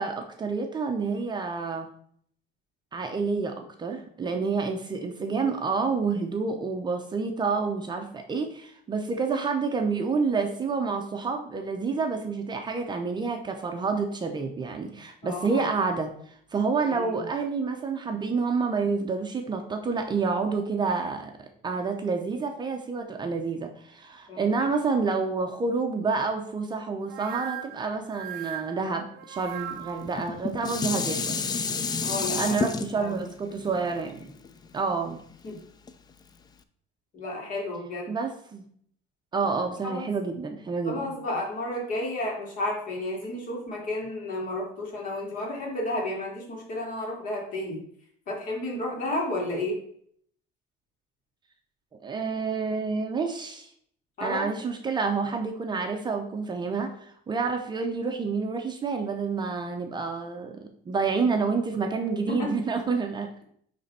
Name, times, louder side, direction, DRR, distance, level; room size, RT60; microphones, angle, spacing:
voice 1, 0.0-1.9 2.9-31.4 32.3-34.3 34.7-35.2 38.1-38.6 39.3-41.1 52.0-53.7 54.2-63.3, right 4 dB, 25° right, 4 dB, 0.6 m, -29 dB
voice 2, 15.2-15.6 16.9-17.2 24.3-24.5 32.0-32.5 33.0-33.2 35.4-35.6 37.1-38.1 39.8-40.1 40.9-47.8 48.3-49.8 54.2-54.5 62.3-62.5, left 1 dB, 50° left, -1 dB, 2.4 m, -32 dB
sound 1, 27.1-30.2, right 12 dB, 75° right, 0.5 m, -38 dB
Dishes pots and pans, 30.0-35.3 35.9-36.0, left 5 dB, 20° left, 0.4 m, -30 dB
9.3 x 3.4 x 4.2 m, 0.65 s
cardioid pair, 145°, 18 cm